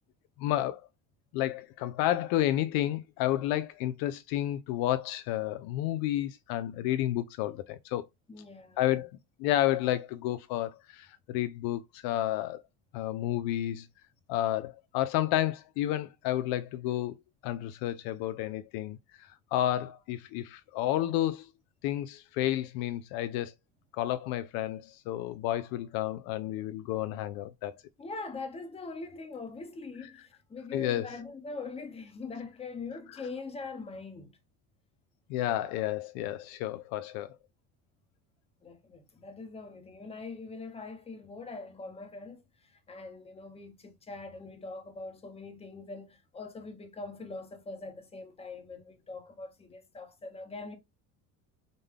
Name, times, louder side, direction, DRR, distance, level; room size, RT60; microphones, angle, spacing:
voice 1, 0.4-0.8 1.3-8.0 8.8-12.6 12.9-13.9 14.3-17.1 17.4-21.5 21.8-23.5 23.9-27.7 30.7-31.1 35.3-37.4, left 13 dB, 65° left, 0.5 m, -31 dB
voice 2, 8.3-9.0 28.0-34.3 38.6-50.8, left 3 dB, 15° left, 0.9 m, -42 dB
5.1 x 2.2 x 3.6 m
cardioid pair, 125°, 40 cm